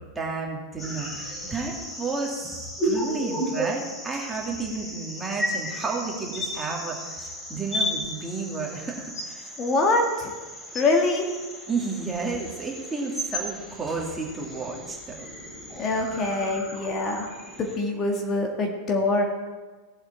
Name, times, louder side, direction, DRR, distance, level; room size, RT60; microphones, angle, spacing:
voice 1, 0.1-2.6 2.8-9.6 11.7-15.3, right 4 dB, 10° right, -2 dB, 2.5 m, -32 dB
sound 1, 0.8-17.8, equal, 10° left, 3.4 m, -34 dB
voice 2, 9.6-10.3 10.7-11.3 15.8-17.2 17.6-19.2, left 2 dB, 30° left, 1 dB, 1.7 m, -24 dB
18.0 x 7.8 x 4.3 m, 1.3 s
figure-of-eight pair, 90°, 0 cm